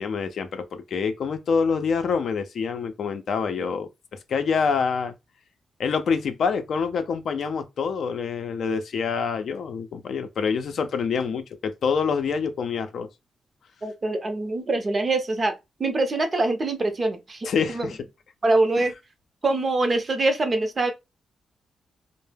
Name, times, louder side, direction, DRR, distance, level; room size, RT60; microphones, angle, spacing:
voice 1, 0.0-5.1 5.8-13.1 17.4-18.0, left 5 dB, 70° left, 0.4 m, -26 dB
voice 2, 13.8-15.5 15.8-17.9 18.4-18.9 19.4-20.9, right 2 dB, 40° right, 0.6 m, -24 dB
2.2 x 2.0 x 3.3 m
cardioid pair, 70°, 0 cm